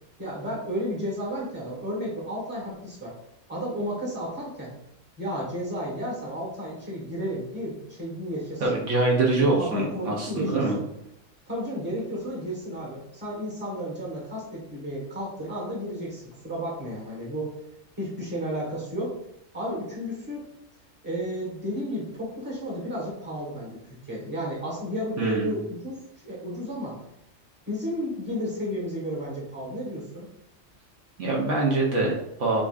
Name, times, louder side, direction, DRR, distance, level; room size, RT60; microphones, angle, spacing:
voice 1, 0.2-3.1 3.5-4.7 5.2-8.8 9.6-10.8 11.5-17.5 18.0-19.1 19.5-20.5 21.0-23.8 24.1-26.0 26.2-27.0 27.7-30.3, equal, 10° right, -4 dB, 1.1 m, -32 dB
voice 2, 8.6-10.7 25.2-25.6 31.2-32.6, right 2 dB, 70° right, -2 dB, 1.1 m, -24 dB
5.0 x 2.6 x 2.4 m, 0.79 s
omnidirectional pair, 1.3 m